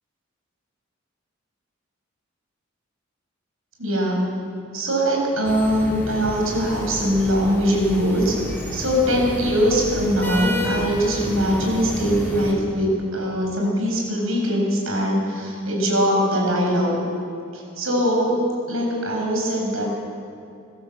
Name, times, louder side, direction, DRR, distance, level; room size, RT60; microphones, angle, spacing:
voice 1, 3.8-4.3 4.7-8.4 8.7-16.9 17.5-18.4 18.7-19.8, equal, 80° right, -1 dB, 6.7 m, -22 dB
sound 1, 5.4-12.5, equal, 10° left, 4.1 m, -31 dB
22.5 x 16.5 x 7.9 m, 2.6 s
head